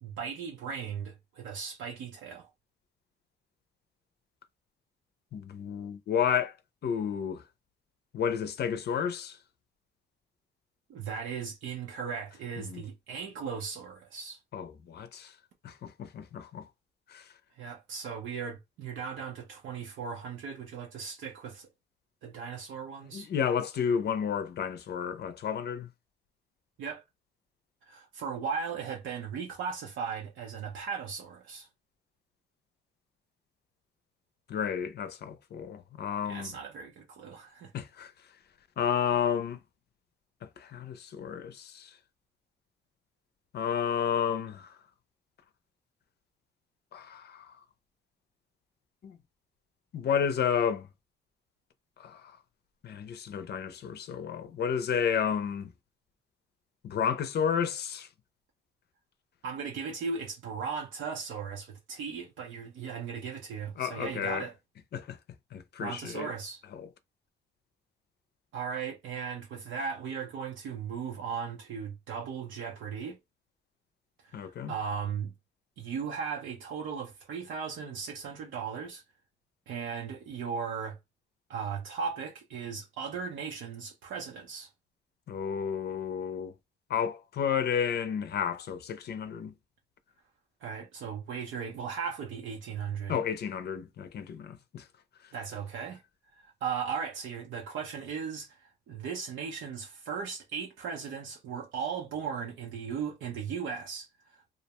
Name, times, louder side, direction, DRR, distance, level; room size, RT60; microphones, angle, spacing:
voice 1, 0.0-2.5 10.9-14.4 17.5-21.7 22.2-23.3 26.8-27.0 27.9-31.7 36.2-37.7 59.4-64.5 65.8-66.6 68.5-73.2 74.2-75.3 75.8-79.0 79.7-81.0 81.5-84.7 90.6-93.2 95.3-96.0 96.4-104.5, right 6 dB, 75° right, 0.6 m, -37 dB
voice 2, 5.3-6.5 6.8-7.4 8.1-9.4 12.6-12.8 14.5-15.3 15.6-16.6 17.1-17.2 23.1-25.9 34.5-36.5 37.7-38.1 38.8-39.6 40.6-41.9 43.5-44.7 46.9-47.5 49.0-49.2 49.9-50.9 52.0-52.3 52.8-55.7 56.8-58.1 63.8-64.5 64.9-65.2 65.5-66.3 66.7-66.9 74.3-74.7 85.3-86.5 86.9-89.5 93.1-94.8, left 7 dB, 55° left, 0.5 m, -31 dB
2.4 x 2.1 x 2.9 m
cardioid pair, 90°, 20 cm